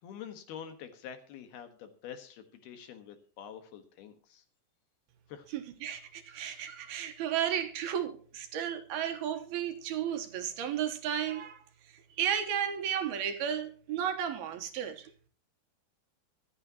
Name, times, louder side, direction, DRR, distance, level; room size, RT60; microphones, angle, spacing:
voice 1, 0.0-4.4 5.3-5.5, left 8 dB, 65° left, 3.2 m, -46 dB
voice 2, 5.5-15.1, right 9 dB, 70° right, 2.8 m, -34 dB
25.0 x 9.9 x 2.9 m
omnidirectional pair, 5.0 m